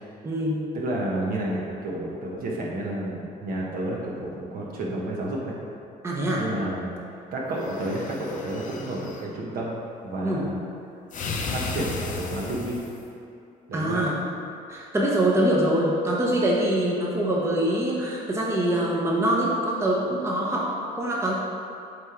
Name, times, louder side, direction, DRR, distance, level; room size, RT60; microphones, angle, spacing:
voice 1, 0.2-0.7 6.0-6.4 10.2-10.4 13.7-14.1 14.7-21.3, right 1 dB, 15° right, -4 dB, 0.9 m, -24 dB
voice 2, 0.7-5.5 6.4-6.9 7.3-9.7 10.0-10.6 11.5-12.8 13.7-14.0, right 1 dB, 60° right, -3 dB, 1.4 m, -30 dB
sound 1, 7.5-9.3 11.1-13.0, left 3 dB, 50° left, 0.8 m, -34 dB
7.7 x 3.5 x 4.4 m, 2.6 s
cardioid pair, 110°, 17 cm